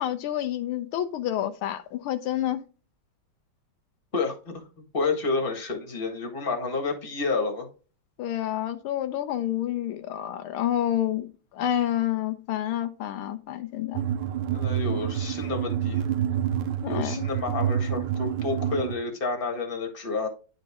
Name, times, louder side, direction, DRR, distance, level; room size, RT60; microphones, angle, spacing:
voice 1, 0.0-2.6 8.2-11.3 11.5-14.0 16.8-17.3, left 11 dB, 80° left, 1.5 m, -28 dB
voice 2, 4.1-4.6 4.9-7.7 14.5-16.0 16.9-20.3, left 4 dB, 25° left, 1.7 m, -29 dB
sound 1, 13.9-18.9, right 9 dB, 75° right, 1.5 m, -28 dB
10.5 x 4.0 x 3.5 m
omnidirectional pair, 2.4 m